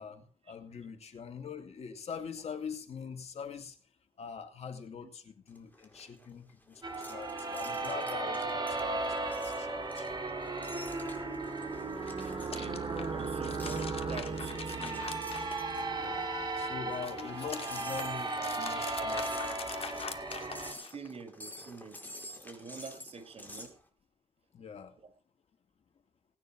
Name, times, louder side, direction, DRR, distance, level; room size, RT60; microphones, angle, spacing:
voice 1, 0.0-3.8 4.2-10.2 15.9-16.2 16.6-19.3 24.5-24.9, left 6 dB, 90° left, 6 dB, 2.7 m, -43 dB
sound 1, 5.5-23.8, left 1 dB, 15° left, 4.6 m, -50 dB
sound 2, 6.8-20.7, right 3 dB, 40° right, 4.3 m, -36 dB
sound 3, 11.9-16.1 16.4-21.1, left 5 dB, 65° left, 2.5 m, -44 dB
voice 2, 12.5-15.2 20.9-22.1 22.4-23.7, right 5 dB, 65° right, 8 dB, 5.6 m, -46 dB
19.5 x 9.6 x 6.1 m, 0.39 s
cardioid pair, 75°, 11 cm